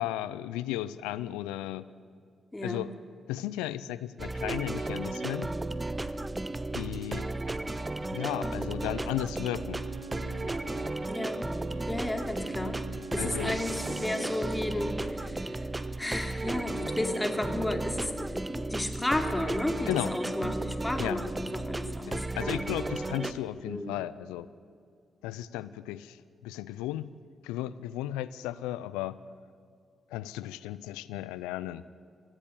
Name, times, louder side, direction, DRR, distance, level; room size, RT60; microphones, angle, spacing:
voice 1, 0.0-1.9 2.6-2.9 3.3-5.6 6.7-7.3 8.1-9.8 13.2-13.6 19.9-20.1 21.0-21.2 22.1-24.5 25.2-26.2 26.4-27.1 27.4-29.2 30.1-31.8, left 14 dB, 80° left, 17 dB, 0.5 m, -35 dB
voice 2, 2.5-2.8 11.1-11.5 11.9-12.8 13.1-15.7 16.0-22.6 23.6-23.9, left 1 dB, 15° left, 5 dB, 2.9 m, -33 dB
sound 1, 4.2-23.3, right 2 dB, 20° right, 1.1 m, -34 dB
Bowed string instrument, 9.1-14.4, right 6 dB, 80° right, 4.0 m, -48 dB
17.5 x 16.5 x 9.0 m, 2.3 s
hypercardioid pair, 40°, 0 cm